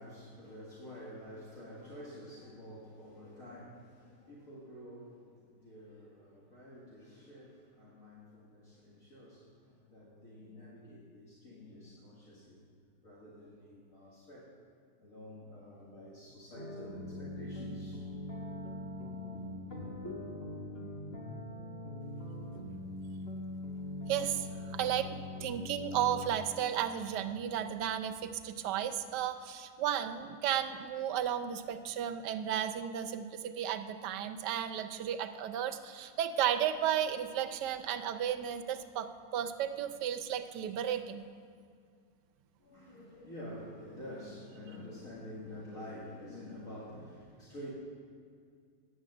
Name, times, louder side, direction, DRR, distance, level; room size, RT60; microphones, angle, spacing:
voice 1, 0.0-12.7 13.0-14.5 15.0-18.0 19.8-20.2 42.6-47.7, left 1 dB, 55° left, -7 dB, 2.1 m, -49 dB
sound 1, 16.5-26.4, left 1 dB, 35° left, 1.7 m, -42 dB
voice 2, 24.1-24.5 24.7-39.1 39.3-41.3, right 10 dB, 85° right, 8 dB, 1.3 m, -34 dB
10.0 x 7.4 x 7.7 m, 2.2 s
omnidirectional pair, 1.8 m